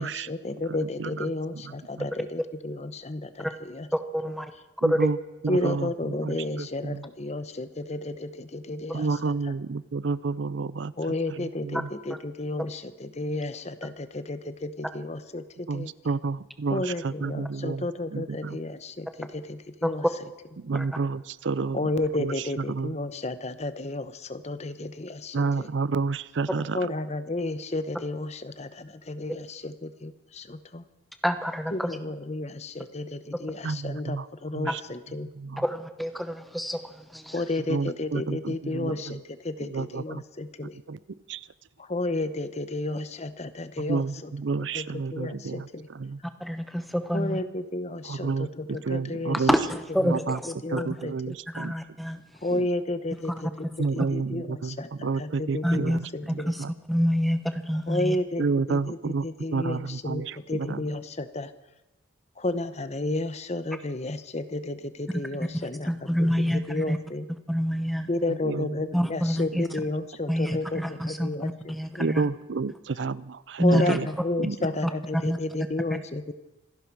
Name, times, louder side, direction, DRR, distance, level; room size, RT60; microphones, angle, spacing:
voice 1, 0.0-3.5 3.7-3.9 5.5-9.1 11.0-15.9 16.7-20.0 21.7-25.7 26.7-30.8 31.7-35.3 37.3-39.2 39.4-40.8 41.9-44.0 44.7-45.9 47.1-49.4 50.6-51.4 52.4-53.7 53.9-56.5 57.9-59.0 59.2-61.5 62.4-65.9 66.2-67.3 68.1-71.5 71.9-72.0 73.6-76.3, left 2 dB, 35° left, 12 dB, 0.8 m, -32 dB
voice 2, 0.7-2.1 4.8-5.2 5.4-7.0 8.9-11.9 15.7-18.6 20.6-21.9 22.2-22.9 25.3-26.8 33.6-34.3 34.5-34.8 35.3-35.6 37.6-39.2 39.6-40.2 40.9-41.0 41.3-41.5 43.8-46.2 48.0-49.5 50.0-50.4 50.7-51.7 52.5-52.7 53.8-56.7 58.4-60.9 68.3-68.9 69.5-69.6 72.0-74.1 74.4-74.6, right 4 dB, 65° right, 19 dB, 0.5 m, -30 dB
voice 3, 4.1-4.5 4.8-5.1 11.7-11.8 12.1-12.2 19.8-20.1 20.7-20.9 31.2-32.0 35.6-37.5 46.4-47.4 49.5-50.5 51.5-52.2 53.1-53.8 55.6-58.2 65.1-65.2 65.5-67.0 67.3-68.1 68.9-69.8 70.3-72.3 73.6-74.0 74.8-75.4, equal, ahead, 8 dB, 1.0 m, -27 dB
26.5 x 11.5 x 4.7 m, 1.0 s
head